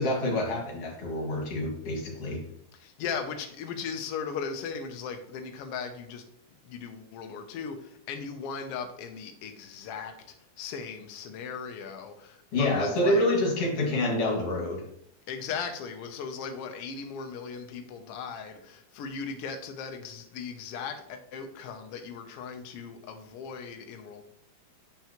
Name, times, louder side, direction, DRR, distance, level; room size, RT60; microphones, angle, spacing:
voice 1, 0.0-2.4 12.5-14.8, left 1 dB, 55° left, -1 dB, 2.7 m, -27 dB
voice 2, 2.7-6.2 6.6-13.2 15.3-24.2, left 6 dB, 80° left, 6 dB, 1.3 m, -37 dB
8.7 x 5.6 x 2.9 m, 0.72 s
omnidirectional pair, 3.5 m